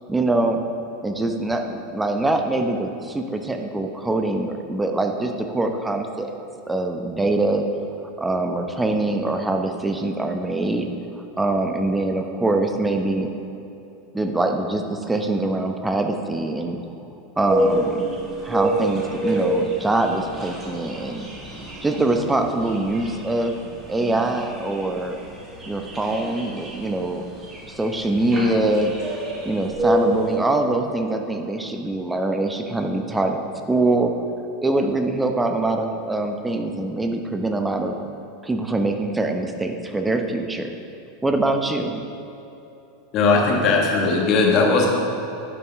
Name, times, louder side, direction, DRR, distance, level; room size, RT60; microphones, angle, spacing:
voice 1, 0.1-0.6 1.0-6.3 6.7-7.6 8.2-10.9 11.4-13.3 14.1-16.8 17.4-18.0 18.4-21.3 21.8-23.5 23.9-25.2 25.7-27.2 27.7-28.9 29.4-33.4 33.7-34.1 34.6-37.9 38.4-40.8 41.2-42.0, right 2 dB, 10° right, 5 dB, 0.8 m, -23 dB
sound 1, 17.5-30.3, right 1 dB, 30° right, 1.7 m, -28 dB
voice 2, 43.1-44.9, left 3 dB, 45° left, -1 dB, 1.5 m, -18 dB
10.5 x 5.6 x 3.5 m, 3.0 s
hypercardioid pair, 90°, 0 cm